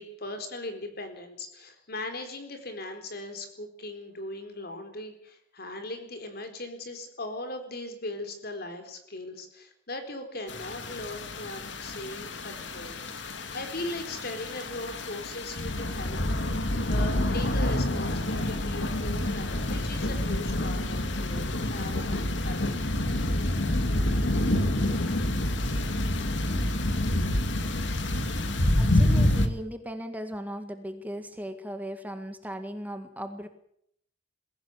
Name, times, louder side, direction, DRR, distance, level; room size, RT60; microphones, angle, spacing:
voice 1, 0.0-16.2 16.5-22.8, left 2 dB, 60° left, 6 dB, 4.3 m, -39 dB
sound 1, 10.5-29.5, left 1 dB, 75° left, 2.2 m, -28 dB
voice 2, 28.8-33.5, equal, 10° right, 7 dB, 1.8 m, -37 dB
22.0 x 16.5 x 8.6 m, 0.71 s
head